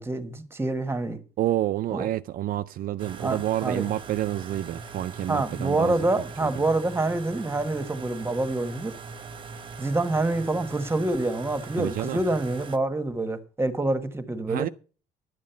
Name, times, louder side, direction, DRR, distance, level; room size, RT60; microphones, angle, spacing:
voice 1, 0.0-1.2 1.9-2.1 3.2-3.9 5.3-9.0 9.8-14.7, right 2 dB, 15° right, 1.3 m, -27 dB
voice 2, 1.4-6.1 6.4-6.5 11.8-12.2 14.5-14.7, right 13 dB, 60° right, 0.4 m, -28 dB
sound 1, 3.0-12.8, right 4 dB, 30° right, 1.0 m, -41 dB
11.0 x 7.5 x 5.7 m
cardioid pair, 110°, 17 cm